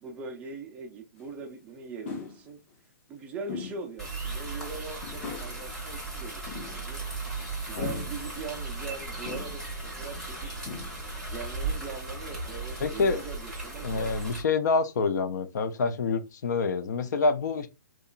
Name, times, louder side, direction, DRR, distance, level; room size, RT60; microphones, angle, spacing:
voice 1, 0.0-2.6 3.1-7.0 7.7-10.5 11.2-14.3, right 5 dB, 15° right, 0.3 m, -41 dB
sound 1, 1.2-1.3 2.0-2.4 3.5-3.9 4.3-4.4 5.0-5.6 6.5-7.1 7.8-8.3 9.2-9.7 10.2-10.3 10.6-11.1, left 5 dB, 35° left, 0.8 m, -39 dB
sound 2, 4.0-14.4, right 3 dB, 5° left, 0.7 m, -36 dB
voice 2, 12.8-13.2 13.8-17.7, left 4 dB, 60° left, 0.4 m, -27 dB
2.9 x 2.3 x 2.3 m
hypercardioid pair, 155°, 11 cm